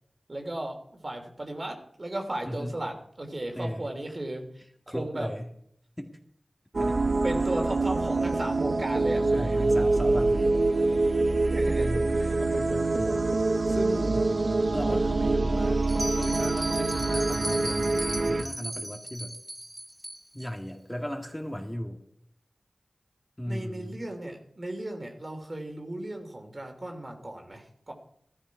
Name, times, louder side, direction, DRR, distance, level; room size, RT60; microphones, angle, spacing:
voice 1, 0.3-4.5 4.9-5.3 7.2-9.4 11.5-11.9 12.2-12.3 23.5-27.9, right 1 dB, 45° right, 3 dB, 3.0 m, -35 dB
voice 2, 2.4-2.8 3.6-3.9 4.9-5.5 6.0-6.2 6.8-7.0 9.3-10.6 11.4-13.3 13.6-14.3 14.7-15.9 16.2-17.9 18.3-19.4 20.3-22.0 23.4-24.0, equal, 10° left, 1 dB, 2.1 m, -36 dB
sound 1, 6.7-18.4, right 2 dB, 65° right, 0.8 m, -25 dB
Bell, 15.8-20.5, equal, 10° right, 0.9 m, -36 dB
14.5 x 13.5 x 4.8 m, 0.69 s
cardioid pair, 40°, 0 cm